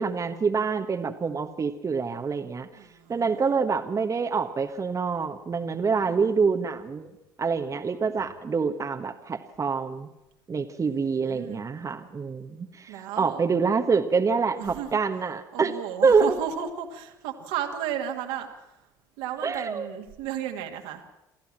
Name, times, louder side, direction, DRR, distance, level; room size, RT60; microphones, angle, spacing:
voice 1, 0.0-2.7 3.1-7.1 7.4-10.1 10.5-15.7 16.0-16.4 19.4-19.8, right 5 dB, 30° right, 5 dB, 1.3 m, -26 dB
voice 2, 2.7-3.5 6.0-6.6 10.8-11.6 12.9-13.4 14.6-14.9 15.5-18.7 19.2-21.0, right 9 dB, 70° right, 3 dB, 2.2 m, -34 dB
28.5 x 13.5 x 7.5 m, 0.96 s
hypercardioid pair, 60°, 11 cm